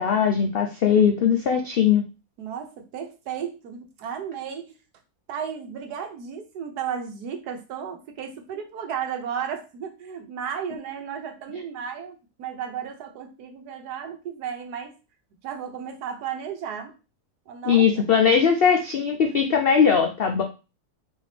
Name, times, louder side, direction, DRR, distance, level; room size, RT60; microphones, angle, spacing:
voice 1, 0.0-2.1 17.7-20.4, left 7 dB, 75° left, 3 dB, 0.5 m, -20 dB
voice 2, 2.4-4.8 5.3-14.9 15.4-16.9 17.5-17.8, right 8 dB, 85° right, 4 dB, 1.4 m, -34 dB
4.2 x 2.7 x 3.3 m, 0.30 s
omnidirectional pair, 1.7 m